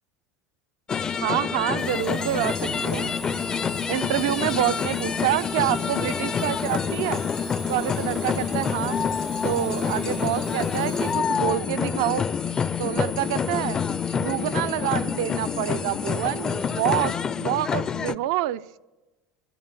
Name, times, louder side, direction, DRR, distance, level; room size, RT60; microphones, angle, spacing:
sound 1, 0.9-18.1, left 6 dB, 25° left, 0.5 m, -27 dB
voice 1, 1.2-3.1 3.9-7.2 7.7-9.0 9.4-12.2 12.8-13.8 14.1-18.6, right 14 dB, 80° right, 14 dB, 0.6 m, -27 dB
sound 2, 1.8-11.2, right 6 dB, 30° right, 0.5 m, -40 dB
sound 3, 2.4-17.2, left 3 dB, 70° left, 1.1 m, -42 dB
12.0 x 11.5 x 9.0 m, 1.1 s
supercardioid pair, 110°, 3 cm